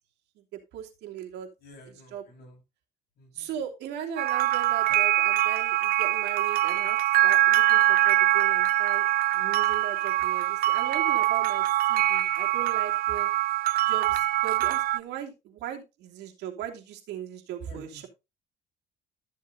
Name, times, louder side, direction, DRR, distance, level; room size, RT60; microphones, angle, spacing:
voice 1, 0.7-1.5 2.1-2.2 3.3-7.0 7.2-9.1 9.3-13.3 13.8-18.1, right 9 dB, 85° right, 1 dB, 2.9 m, -38 dB
voice 2, 1.6-2.6 3.2-3.5 4.9-5.0 17.7-18.1, left 2 dB, 65° left, 1 dB, 6.9 m, -50 dB
sound 1, 4.2-15.0, right 15 dB, 60° right, 0.5 m, -23 dB
13.5 x 7.4 x 2.7 m, 0.25 s
cardioid pair, 110°, 17 cm